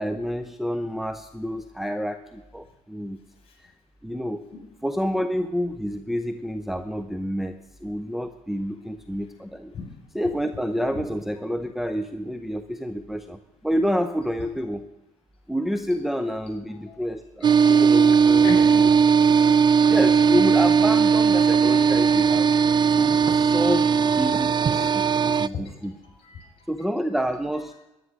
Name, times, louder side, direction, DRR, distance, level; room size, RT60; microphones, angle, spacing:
voice 1, 0.0-3.2 3.6-3.7 4.0-4.4 4.8-7.6 7.8-9.7 10.1-14.8 15.5-18.6 19.5-22.5 22.9-25.9 26.7-27.7, equal, ahead, 7 dB, 0.7 m, -28 dB
sound 1, 17.4-25.5, right 6 dB, 30° right, 0.4 m, -18 dB
voice 2, 18.3-18.8 19.1-19.4 19.8-20.0 23.6-23.7 24.7-24.8 25.6-26.7, left 5 dB, 40° left, 1 dB, 6.6 m, -38 dB
13.0 x 11.5 x 6.4 m, 0.99 s
supercardioid pair, 75°, 15 cm